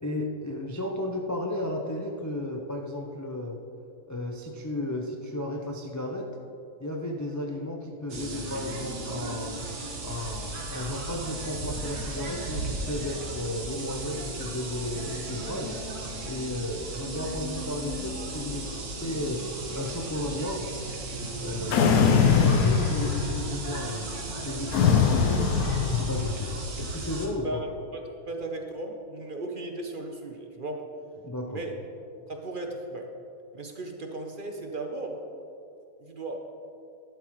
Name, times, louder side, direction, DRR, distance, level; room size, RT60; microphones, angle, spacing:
voice 1, 0.0-3.6 4.1-6.4 6.8-9.6 10.0-15.8 16.2-19.5 19.7-20.7 21.4-24.1 24.4-27.6 31.2-31.6, left 1 dB, 30° left, 0 dB, 0.3 m, -34 dB
sound 1, 8.1-27.3, right 2 dB, 80° right, 1.8 m, -35 dB
sound 2, 21.7-23.6 24.7-26.5, left 6 dB, 75° left, 1.1 m, -22 dB
voice 2, 28.3-30.8 31.5-31.7 32.3-33.1 33.5-35.2 36.0-36.4, right 2 dB, 40° right, 2 dB, 0.8 m, -36 dB
11.5 x 11.5 x 3.1 m, 2.6 s
omnidirectional pair, 1.6 m